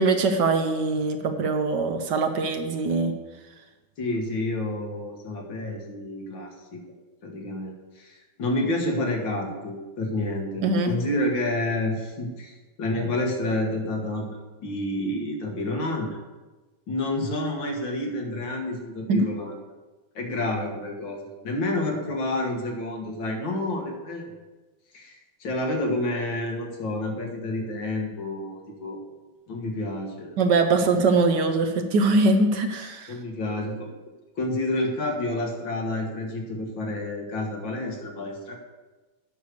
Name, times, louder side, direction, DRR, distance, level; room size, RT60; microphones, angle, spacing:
voice 1, 0.0-3.1 10.6-10.9 19.1-19.3 30.4-33.1, right 3 dB, 65° right, 6 dB, 1.3 m, -22 dB
voice 2, 4.0-6.8 7.2-16.2 16.9-19.5 20.2-24.3 24.9-29.0 29.5-30.3 30.7-30.9 33.1-33.9 34.4-38.6, left 1 dB, 70° left, 1 dB, 2.3 m, -29 dB
8.5 x 6.5 x 6.7 m, 1.2 s
omnidirectional pair, 2.2 m